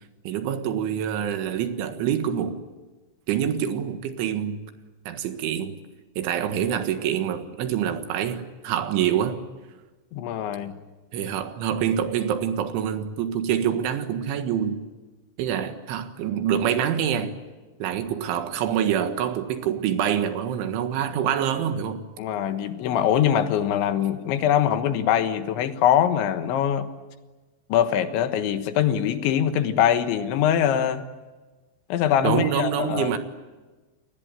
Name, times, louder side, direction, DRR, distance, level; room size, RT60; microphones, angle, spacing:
voice 1, 0.3-2.6 3.3-4.7 5.1-5.8 6.2-9.4 11.1-14.9 15.4-17.4 17.8-22.1 32.2-33.2, right 9 dB, 85° right, 4.1 m, -26 dB
voice 2, 10.1-10.8 22.2-26.9 27.7-31.1 31.9-33.2, left 9 dB, 80° left, 3.6 m, -23 dB
29.0 x 20.5 x 9.0 m
omnidirectional pair, 5.4 m